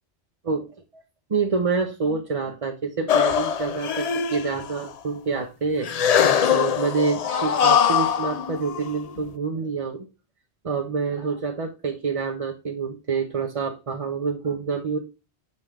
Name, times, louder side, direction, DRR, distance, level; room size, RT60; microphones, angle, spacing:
voice 1, 1.3-6.1 6.5-10.1 10.6-15.0, right 4 dB, 35° right, 2 dB, 0.7 m, -27 dB
sound 1, 3.1-4.9 5.8-9.2, left 8 dB, 55° left, 0.4 m, -22 dB
5.9 x 5.5 x 3.2 m, 0.28 s
omnidirectional pair, 1.1 m